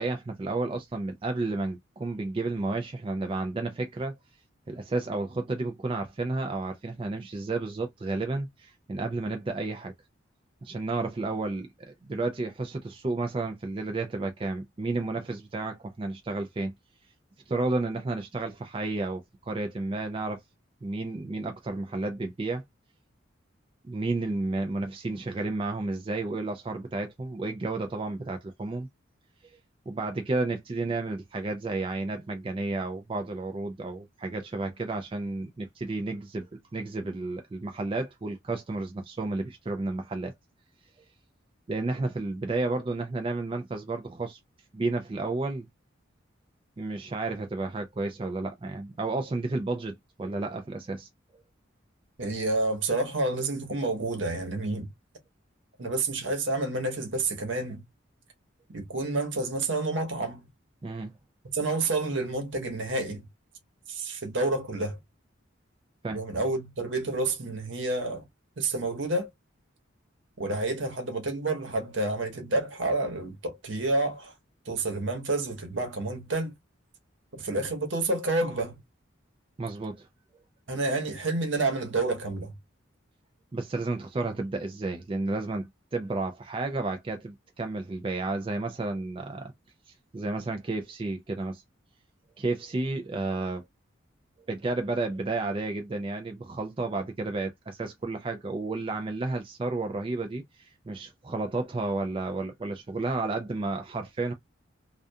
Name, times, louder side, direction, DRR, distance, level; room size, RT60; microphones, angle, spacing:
voice 1, 0.0-4.2 4.7-9.9 10.6-16.7 17.5-20.4 20.8-22.6 23.8-28.9 29.9-40.3 41.7-44.4 44.7-45.6 46.8-51.1 60.8-61.1 66.0-66.2 79.6-80.1 83.5-89.5 90.1-91.6 92.4-93.6 94.5-104.3, right 2 dB, 25° right, 0.3 m, -32 dB
voice 2, 52.2-54.9 55.8-57.9 58.7-60.5 61.5-63.3 63.9-65.0 66.1-68.2 68.6-69.3 70.4-74.3 74.6-76.5 77.3-78.8 80.7-82.6, right 2 dB, 70° right, 1.0 m, -29 dB
2.4 x 2.3 x 2.5 m
head